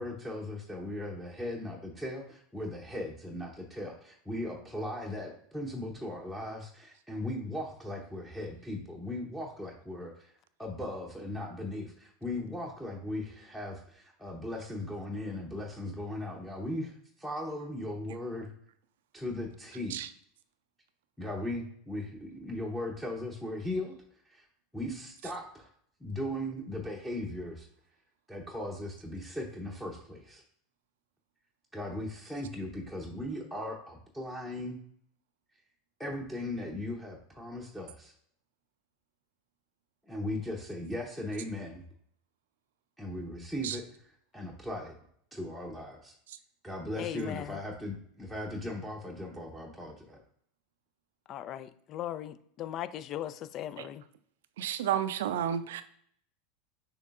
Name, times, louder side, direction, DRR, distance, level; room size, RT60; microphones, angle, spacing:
voice 1, 0.0-10.3 10.6-16.9 17.2-18.5 19.1-20.0 21.2-23.9 24.3-24.5 24.7-25.7 26.0-27.7 28.3-30.4 31.7-34.8 36.0-38.1 40.1-41.8 43.0-43.8 44.3-44.9 45.3-46.1 46.6-50.2, left 1 dB, 5° left, 0.9 m, -38 dB
voice 2, 47.0-47.6 51.3-54.0, left 12 dB, 45° left, 0.3 m, -38 dB
voice 3, 54.6-55.8, right 10 dB, 75° right, 0.4 m, -31 dB
6.5 x 3.1 x 2.5 m
hypercardioid pair, 90°, 0 cm